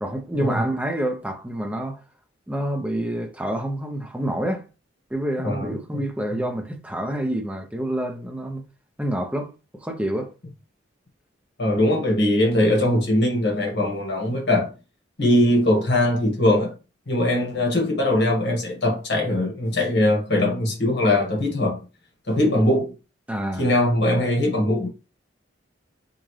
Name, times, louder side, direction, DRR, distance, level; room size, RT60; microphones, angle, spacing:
voice 1, 0.0-2.0 2.5-4.6 5.1-8.6 9.0-9.5 9.8-10.3 22.5-22.6 23.3-23.7, right 1 dB, 5° right, 0.7 m, -27 dB
voice 2, 5.4-6.0 11.6-14.7 15.2-16.7 17.1-21.8 22.3-22.9 23.6-24.9, left 1 dB, 65° left, 1.4 m, -21 dB
4.9 x 2.6 x 3.1 m
head